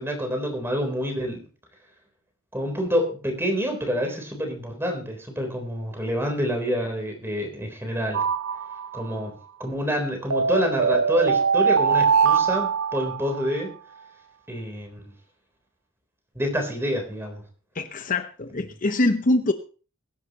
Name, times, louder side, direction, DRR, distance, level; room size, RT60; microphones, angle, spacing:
voice 1, 0.0-1.4 2.5-8.2 8.9-9.3 9.6-13.7 14.5-15.1 16.4-17.4, equal, 10° right, 3 dB, 3.7 m, -27 dB
sound 1, 8.1-9.2 10.3-13.5, right 6 dB, 80° right, 0.6 m, -22 dB
voice 2, 17.8-19.5, left 2 dB, 40° left, 8 dB, 0.8 m, -23 dB
22.0 x 10.5 x 3.0 m, 0.38 s
head